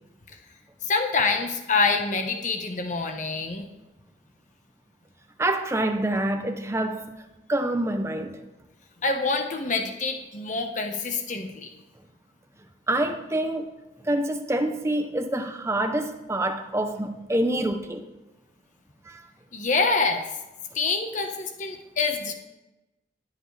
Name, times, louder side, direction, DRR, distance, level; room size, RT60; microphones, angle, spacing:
voice 1, 0.8-3.7 9.0-11.7 19.5-20.2 20.7-22.3, left 4 dB, 40° left, 5 dB, 1.1 m, -26 dB
voice 2, 5.4-7.1 7.5-8.4 12.9-13.7 14.0-18.1 19.0-19.3, right 1 dB, 15° right, 6 dB, 0.7 m, -26 dB
19.5 x 7.8 x 3.3 m, 1.0 s
head